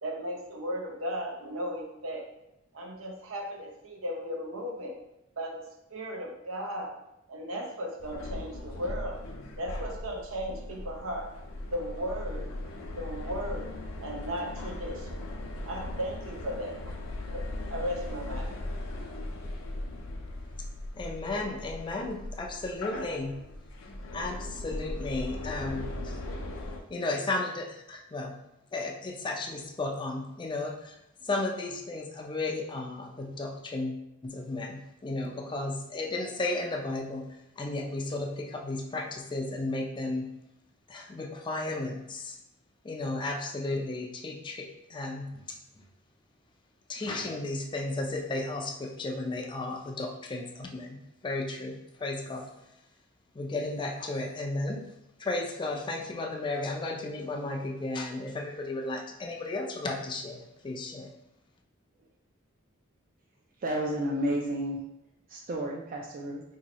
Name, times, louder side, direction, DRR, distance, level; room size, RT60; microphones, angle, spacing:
voice 1, 0.0-2.3 2.7-5.0 5.4-7.0 7.3-9.2 9.6-11.3 11.7-12.5 13.0-13.7 14.0-15.2 15.6-17.0 17.2-18.5, equal, 90° right, 0 dB, 0.7 m, -36 dB
sound 1, 8.0-26.8, left 1 dB, 85° left, 0.5 m, -38 dB
voice 2, 20.9-23.4 24.1-26.2 26.9-28.4 28.7-31.0 31.2-33.9 34.2-37.3 37.6-40.3 40.9-42.4 42.8-45.6 46.9-52.5 53.3-54.8 55.2-61.1, left 2 dB, 25° left, 1 dB, 0.4 m, -34 dB
voice 3, 63.6-64.8 65.3-66.4, right 1 dB, 45° right, -1 dB, 0.4 m, -31 dB
2.8 x 2.7 x 4.0 m, 0.86 s
head